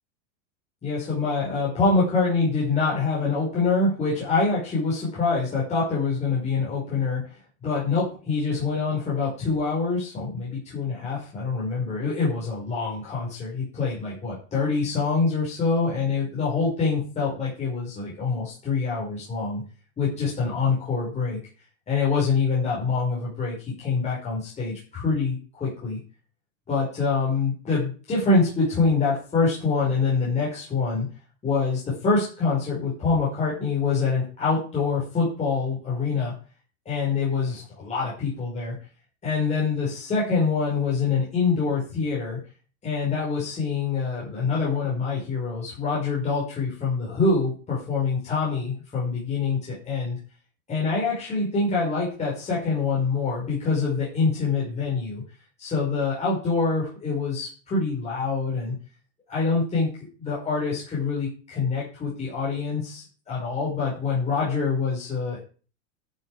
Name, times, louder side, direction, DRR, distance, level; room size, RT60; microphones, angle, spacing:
voice 1, 0.8-19.6 20.0-21.4 21.9-26.0 26.7-31.0 31.4-36.3 36.8-38.7 39.2-42.4 42.8-50.2 50.7-55.2 55.6-58.7 59.3-59.9 60.2-65.4, left 4 dB, 15° left, -7 dB, 5.2 m, -25 dB
11.5 x 8.0 x 4.9 m, 0.38 s
supercardioid pair, 155°, 41 cm